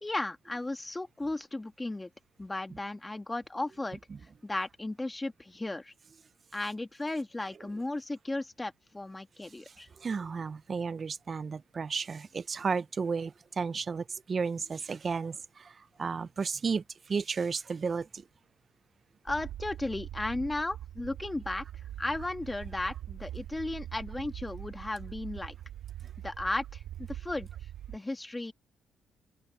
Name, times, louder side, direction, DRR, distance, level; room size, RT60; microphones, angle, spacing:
voice 1, 0.0-2.1 2.4-4.0 4.4-5.9 6.5-9.9 19.2-21.6 22.0-25.5 26.2-27.5 27.9-28.5, left 2 dB, 15° left, 1.6 m, -35 dB
voice 2, 10.0-15.7 16.0-18.2, right 5 dB, 40° right, 0.7 m, -33 dB
sound 1, 19.3-28.0, right 12 dB, 85° right, 2.4 m, -43 dB
open air
cardioid pair, 90°, 0 cm